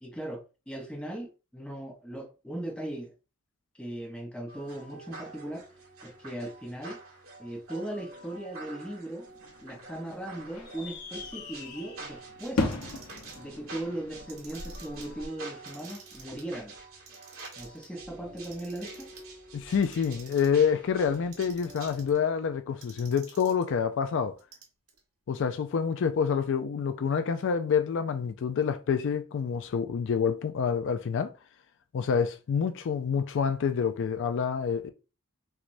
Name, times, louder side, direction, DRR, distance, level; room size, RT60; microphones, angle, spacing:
voice 1, 0.0-3.1 3.8-5.7 6.0-7.0 7.4-9.3 9.6-12.8 13.4-16.8 17.6-19.1, right 1 dB, 5° left, 0.6 m, -38 dB
sound 1, 4.5-22.1, right 3 dB, 70° right, 2.0 m, -47 dB
sound 2, 9.3-15.3, left 3 dB, 80° left, 0.9 m, -37 dB
Clock, 12.7-13.5 14.1-15.1 15.5-16.5 16.9-17.9 18.4-19.2 19.7-20.7 21.1-22.2 22.8-23.7 24.4-25.0, right 6 dB, 90° right, 1.3 m, -51 dB
voice 2, 19.5-24.4 25.3-31.3 31.9-34.9, left 6 dB, 55° left, 0.3 m, -27 dB
6.0 x 2.2 x 2.6 m
head